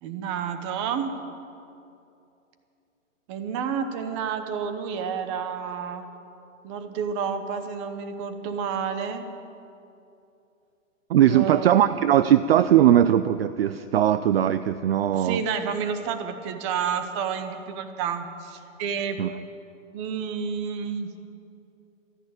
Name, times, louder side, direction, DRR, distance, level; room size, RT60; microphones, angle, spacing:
voice 1, 0.0-1.1 3.3-6.1 6.6-9.3 11.3-12.0 15.1-19.2 19.9-21.1, right 7 dB, 20° right, 8 dB, 0.9 m, -30 dB
voice 2, 11.1-15.4 19.2-19.3, right 11 dB, 50° right, 13 dB, 0.5 m, -19 dB
13.5 x 10.5 x 9.7 m, 2.7 s
hypercardioid pair, 160°, 39 cm